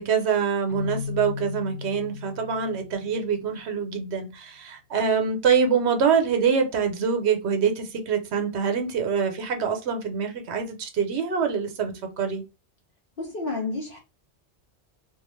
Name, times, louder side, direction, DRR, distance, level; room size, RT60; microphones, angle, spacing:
voice 1, 0.0-12.4, right 6 dB, 75° right, 0.9 m, -25 dB
Keyboard (musical), 0.7-3.6, left 6 dB, 20° left, 0.7 m, -36 dB
voice 2, 13.2-14.0, left 3 dB, 55° left, 0.9 m, -30 dB
2.4 x 2.3 x 3.0 m
omnidirectional pair, 1.2 m